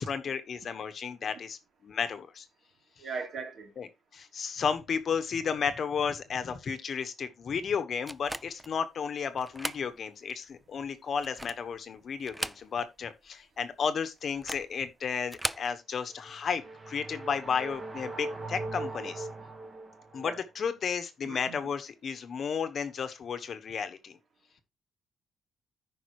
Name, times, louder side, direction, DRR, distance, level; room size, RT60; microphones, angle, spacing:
voice 1, 0.0-2.5 3.8-19.3 20.1-24.2, left 6 dB, 45° left, 1.2 m, -33 dB
voice 2, 3.0-3.7 20.2-20.4 21.2-21.6, right 4 dB, 55° right, 3.3 m, -38 dB
sound 1, 8.1-8.7 9.4-9.9 10.3-10.4 11.1-11.7 12.2-13.0 13.3-13.4 14.3-14.7 15.2-15.7, right 1 dB, 5° right, 0.4 m, -37 dB
sound 2, 16.1-20.4, right 2 dB, 25° right, 1.8 m, -40 dB
14.0 x 5.4 x 3.1 m
cardioid pair, 135°, 0 cm